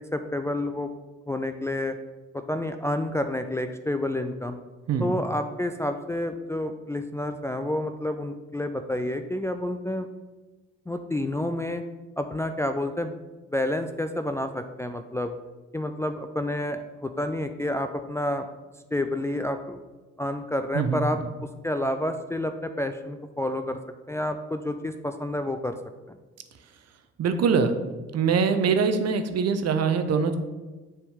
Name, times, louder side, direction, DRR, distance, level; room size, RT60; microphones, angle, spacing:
voice 1, 0.1-0.9 1.3-1.9 2.3-4.6 5.0-10.1 10.9-11.8 12.2-13.1 13.5-15.3 15.7-18.5 18.9-19.8 20.2-21.2 21.6-23.8 24.1-25.8 26.1-26.2, left 1 dB, 10° left, 7 dB, 0.4 m, -29 dB
voice 2, 20.7-21.3 27.2-27.8 28.1-30.4, right 5 dB, 50° right, 8 dB, 0.8 m, -23 dB
6.9 x 3.6 x 6.1 m, 1.2 s
hypercardioid pair, 50°, 34 cm